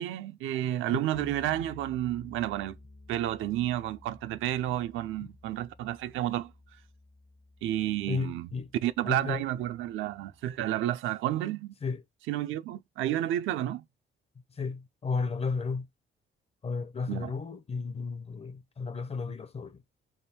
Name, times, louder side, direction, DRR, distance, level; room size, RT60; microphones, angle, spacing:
voice 1, 0.0-2.8 3.1-6.5 7.6-8.5 8.8-11.7 12.3-13.8 17.1-17.3, right 13 dB, 80° right, 0.4 m, -31 dB
Bass guitar, 1.1-10.8, left 3 dB, 65° left, 1.3 m, -53 dB
voice 2, 8.1-8.7 9.0-9.4 11.8-12.0 14.6-15.9 16.6-19.8, left 4 dB, 30° left, 0.5 m, -33 dB
3.5 x 2.2 x 4.1 m
cardioid pair, 90°, 20 cm